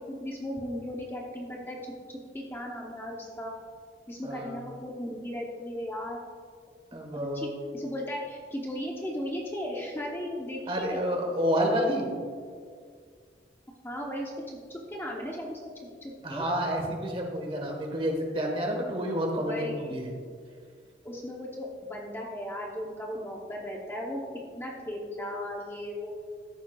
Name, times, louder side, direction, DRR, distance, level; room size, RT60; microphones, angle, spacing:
voice 1, 0.1-1.9 2.3-3.5 4.1-6.2 7.3-7.5 7.7-11.0 13.8-14.3 14.7-15.6 16.0-16.5 19.4-19.9 21.0-24.2 24.5-26.1, equal, 15° left, -2 dB, 0.8 m, -36 dB
voice 2, 4.2-4.6 6.9-7.5 10.7-12.1 16.2-20.1, equal, 30° right, 1 dB, 1.4 m, -29 dB
14.5 x 7.1 x 2.3 m, 2.1 s
head